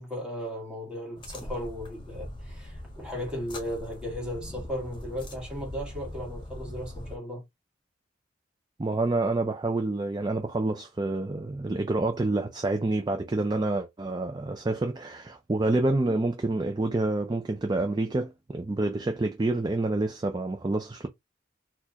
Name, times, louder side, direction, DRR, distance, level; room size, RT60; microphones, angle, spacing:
voice 1, 0.0-7.4, equal, 5° right, 1.7 m, -36 dB
sound 1, 1.2-7.2, left 1 dB, 25° left, 0.8 m, -41 dB
voice 2, 8.8-21.1, right 2 dB, 20° right, 0.4 m, -28 dB
4.2 x 2.3 x 2.8 m
head